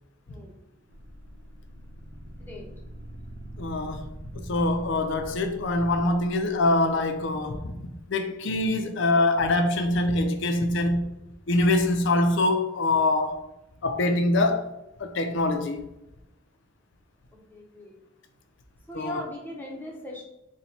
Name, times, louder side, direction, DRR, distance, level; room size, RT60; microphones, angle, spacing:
sound 1, 0.9-7.1, right 1 dB, 70° right, 0.7 m, -43 dB
voice 1, 3.6-4.1 4.3-7.8 8.1-11.0 11.5-13.5 13.8-14.7 15.0-15.8 18.9-19.2, left 2 dB, 60° left, 0.4 m, -24 dB
voice 2, 17.3-17.9 18.9-20.2, left 1 dB, 10° left, 0.7 m, -38 dB
4.0 x 2.2 x 4.2 m
head